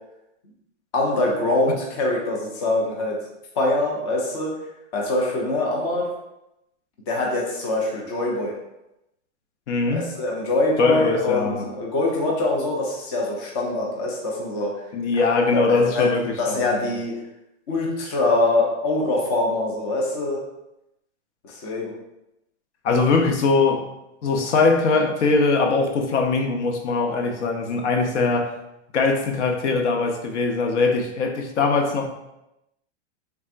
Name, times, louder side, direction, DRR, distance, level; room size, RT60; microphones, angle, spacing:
voice 1, 0.9-3.2 3.5-4.5 4.9-6.1 7.1-8.5 9.9-14.8 15.1-15.2 15.5-16.1 16.4-17.2 17.7-20.4 21.4-21.9, left 2 dB, 25° left, -2 dB, 0.4 m, -24 dB
voice 2, 9.7-10.1 10.8-11.7 14.9-16.9 22.8-23.9 24.2-28.5 28.9-32.1, left 4 dB, 75° left, 4 dB, 0.8 m, -21 dB
4.3 x 3.5 x 2.5 m, 0.89 s
supercardioid pair, 170°, 35 cm